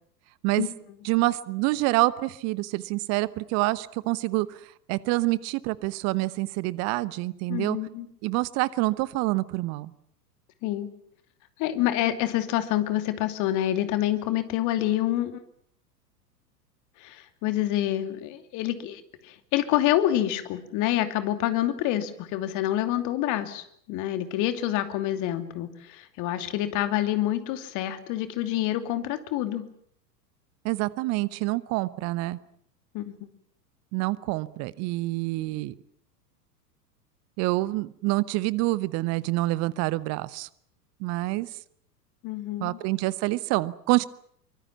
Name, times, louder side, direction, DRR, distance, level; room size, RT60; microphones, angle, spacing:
voice 1, 1.0-4.6 4.9-7.8 8.2-9.9 30.6-32.4 33.9-35.7 37.4-40.5 41.0-41.5 42.6-44.1, right 20 dB, 35° right, 19 dB, 1.0 m, -27 dB
voice 2, 7.5-8.1 10.6-10.9 11.6-15.4 17.0-29.7 32.9-33.2 42.2-42.8, left 13 dB, 40° left, 9 dB, 2.8 m, -27 dB
24.5 x 24.0 x 7.3 m, 0.66 s
figure-of-eight pair, 95°, 49 cm